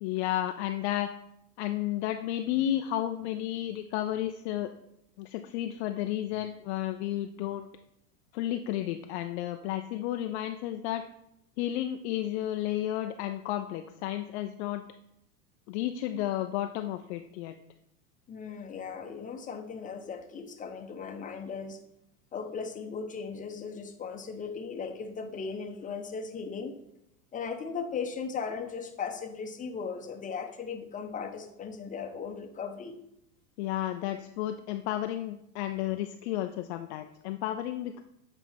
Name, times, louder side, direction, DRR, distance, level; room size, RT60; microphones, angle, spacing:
voice 1, 0.0-1.1 1.6-4.7 5.2-7.7 8.3-11.0 11.6-14.8 15.7-17.6 33.6-38.0, left 13 dB, 45° left, 7 dB, 0.5 m, -32 dB
voice 2, 18.3-21.8 22.3-26.8 27.3-32.9, left 5 dB, 15° left, 5 dB, 0.8 m, -37 dB
7.9 x 4.4 x 4.3 m, 0.79 s
hypercardioid pair, 95°, 46 cm